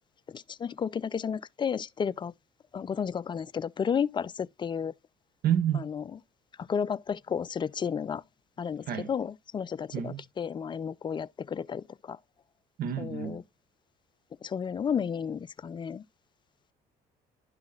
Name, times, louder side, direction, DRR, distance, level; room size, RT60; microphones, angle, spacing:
voice 1, 0.3-2.3 2.7-4.9 5.7-6.1 6.6-8.2 8.6-12.2 13.0-13.4 14.4-16.0, left 7 dB, 25° left, 0.4 m, -32 dB
voice 2, 5.4-5.9 8.9-9.1 9.9-10.2 12.8-13.4, right 9 dB, 65° right, 1.1 m, -29 dB
11.5 x 5.8 x 2.3 m
cardioid pair, 110°, 17 cm